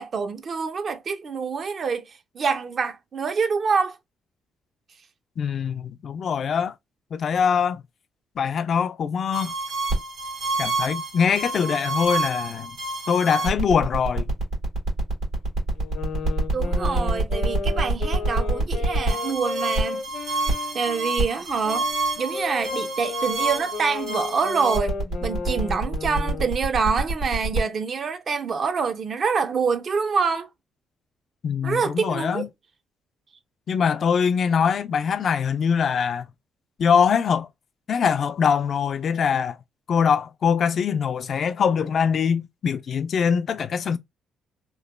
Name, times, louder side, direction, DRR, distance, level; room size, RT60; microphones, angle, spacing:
voice 1, 0.0-4.0 16.5-20.1 20.7-21.9 22.2-24.9 25.2-30.5 31.6-32.5, right 5 dB, 50° right, 0.5 m, -26 dB
voice 2, 5.4-6.7 7.1-7.8 8.4-9.5 10.6-12.7 13.1-14.3 31.4-32.5 33.7-36.3 36.8-37.5 37.9-39.6 39.9-44.0, left 7 dB, 55° left, 0.3 m, -23 dB
sound 1, 9.3-27.6, right 2 dB, 90° right, 1.7 m, -27 dB
sound 2, 15.8-21.2 21.6-26.5, left 4 dB, 80° left, 0.7 m, -34 dB
3.0 x 2.1 x 2.2 m
cardioid pair, 90°, 0 cm